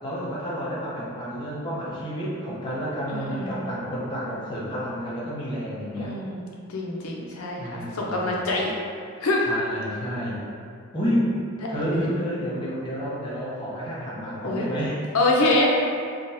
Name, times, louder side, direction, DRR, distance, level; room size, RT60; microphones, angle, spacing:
voice 1, 0.0-6.1 7.6-8.5 9.4-10.4 10.9-11.3 11.7-15.0, equal, 20° left, -8 dB, 0.5 m, -30 dB
voice 2, 3.1-3.6 6.0-6.4 6.7-8.7 9.2-9.4 11.6-12.2 14.4-14.7 15.1-15.7, left 2 dB, 85° left, -2 dB, 0.5 m, -25 dB
3.6 x 2.1 x 2.6 m, 2.3 s
head